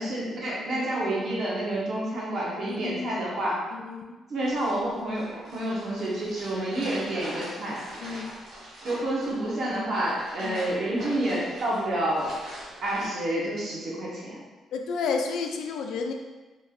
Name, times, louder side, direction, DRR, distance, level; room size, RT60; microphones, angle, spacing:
voice 1, 0.0-3.6 4.3-5.3 5.5-7.8 8.8-12.3 12.8-14.4, right 1 dB, 55° right, -5 dB, 0.9 m, -29 dB
voice 2, 2.7-3.2 3.7-4.1 8.0-8.3 10.4-10.7 14.7-16.1, left 5 dB, 80° left, 3 dB, 0.3 m, -31 dB
sound 1, 4.4-13.1, right 1 dB, 80° right, 1.0 m, -42 dB
3.0 x 2.6 x 2.4 m, 1.2 s
cardioid pair, 90°, 0 cm